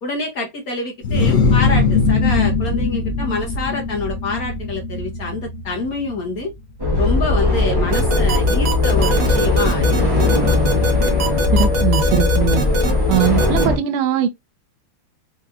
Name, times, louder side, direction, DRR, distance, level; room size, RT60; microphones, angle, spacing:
voice 1, 0.0-6.5 7.0-10.6, left 2 dB, 55° left, 1.1 m, -26 dB
sound 1, 1.0-6.6, left 4 dB, 80° left, 0.7 m, -20 dB
sound 2, 6.8-13.8, left 3 dB, 15° right, 1.1 m, -18 dB
sound 3, 7.9-13.6, right 3 dB, 50° right, 1.6 m, -23 dB
voice 2, 11.5-12.6 13.1-14.3, right 10 dB, 80° right, 1.6 m, -20 dB
4.6 x 2.9 x 2.4 m
omnidirectional pair, 2.4 m